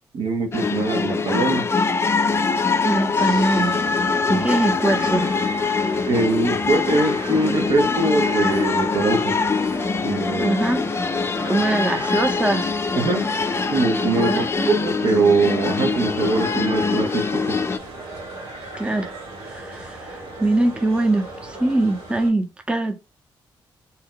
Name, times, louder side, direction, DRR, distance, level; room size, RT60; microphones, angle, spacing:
voice 1, 0.1-1.7 4.3-4.4 6.1-9.4 10.0-10.5 12.9-13.3 13.7-17.6, right 3 dB, 65° right, 0.7 m, -22 dB
sound 1, 0.5-17.8, left 4 dB, 30° left, 0.3 m, -23 dB
voice 2, 2.8-5.3 10.4-10.9 11.5-12.7 14.3-14.7 18.7-19.1 19.4-23.0, right 2 dB, 10° right, 0.7 m, -23 dB
sound 2, 3.1-22.3, right 2 dB, 85° right, 1.6 m, -36 dB
2.7 x 2.2 x 3.7 m
cardioid pair, 65°, 9 cm